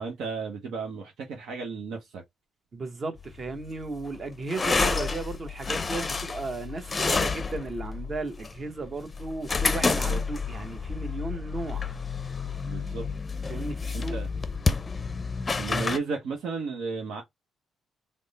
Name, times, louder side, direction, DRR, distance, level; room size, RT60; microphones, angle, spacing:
voice 1, 0.0-2.2 9.9-10.2 12.7-13.1 13.9-14.3 15.6-17.2, right 4 dB, 80° right, 0.9 m, -34 dB
voice 2, 2.7-11.8 13.5-14.2, right 3 dB, 40° right, 0.9 m, -35 dB
sound 1, 3.2-16.0, left 4 dB, 30° left, 0.5 m, -30 dB
3.6 x 2.0 x 4.0 m
cardioid pair, 90°, 0 cm